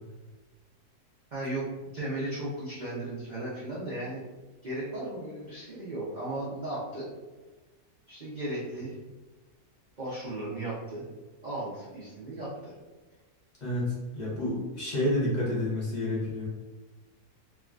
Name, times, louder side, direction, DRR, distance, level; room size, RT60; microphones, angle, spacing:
voice 1, 1.3-1.7 1.9-4.2 4.6-7.0 8.1-8.9 10.0-11.0 11.4-12.7, right 1 dB, 90° right, -8 dB, 0.4 m, -35 dB
voice 2, 13.6-16.5, left 1 dB, 35° left, -8 dB, 0.8 m, -29 dB
3.4 x 2.2 x 2.4 m, 1.2 s
omnidirectional pair, 1.7 m